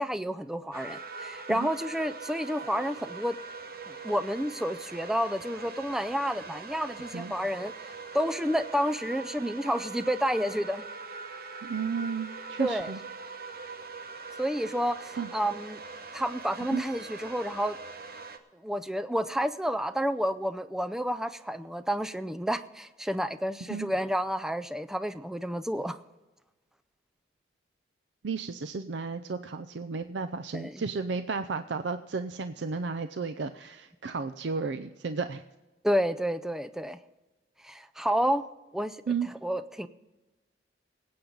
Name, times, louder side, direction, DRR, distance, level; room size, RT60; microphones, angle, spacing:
voice 1, 0.0-3.4 3.9-7.7 8.1-10.9 12.6-12.9 14.4-15.8 16.1-17.8 18.5-26.0 30.5-30.7 35.8-37.0 37.6-38.5 38.7-39.0 39.4-39.9, equal, 5° right, 12 dB, 0.4 m, -30 dB
sound 1, 0.7-18.4, right 4 dB, 55° right, 0.9 m, -42 dB
voice 2, 11.6-13.0 15.1-15.3 16.7-16.8 23.7-23.9 28.2-35.4 39.1-39.3, right 5 dB, 70° right, 10 dB, 0.5 m, -33 dB
19.5 x 8.6 x 3.9 m, 1.1 s
head